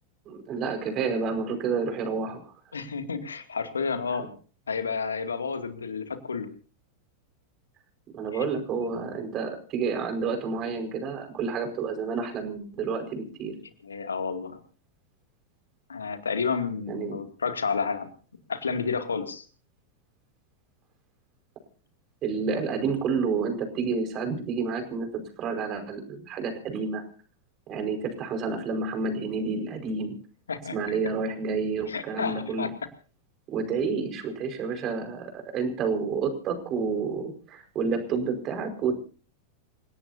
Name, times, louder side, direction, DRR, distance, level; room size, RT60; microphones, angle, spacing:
voice 1, 0.2-2.5 8.1-13.6 16.9-17.2 22.2-27.0 27.7-30.2 30.7-32.7 33.5-38.9, right 5 dB, 35° right, 6 dB, 5.1 m, -29 dB
voice 2, 2.7-4.3 4.7-6.5 8.3-8.5 8.8-9.1 13.8-14.6 15.9-18.1 18.5-19.5 30.5-31.0 31.9-32.7, left 5 dB, 75° left, 7 dB, 2.5 m, -31 dB
28.5 x 17.5 x 2.8 m, 0.40 s
figure-of-eight pair, 90°, 0 cm